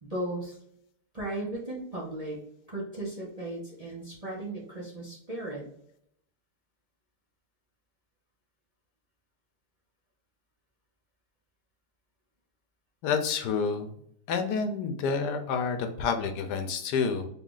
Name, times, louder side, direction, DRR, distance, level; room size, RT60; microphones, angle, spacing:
voice 1, 0.0-0.6 1.1-2.4 2.7-5.7, right 1 dB, 30° right, -5 dB, 0.7 m, -36 dB
voice 2, 13.0-13.9 14.3-17.3, left 5 dB, 85° left, 6 dB, 1.2 m, -29 dB
3.7 x 2.4 x 3.8 m, 0.71 s
omnidirectional pair, 1.8 m